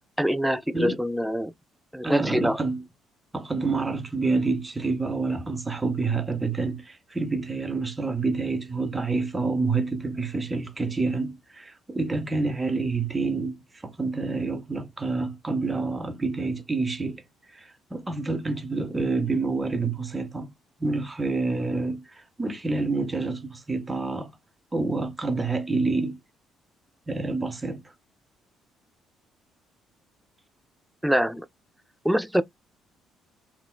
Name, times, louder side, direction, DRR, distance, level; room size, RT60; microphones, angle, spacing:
voice 1, 0.2-1.5 1.9-2.6 31.0-31.5 32.0-32.4, equal, 5° right, 0.3 m, -24 dB
voice 2, 2.0-2.8 3.3-17.2 17.5-20.5 20.8-24.3 24.7-26.2 27.1-27.9, right 3 dB, 20° right, 0.8 m, -28 dB
3.5 x 2.1 x 2.3 m
hypercardioid pair, 55°, 0 cm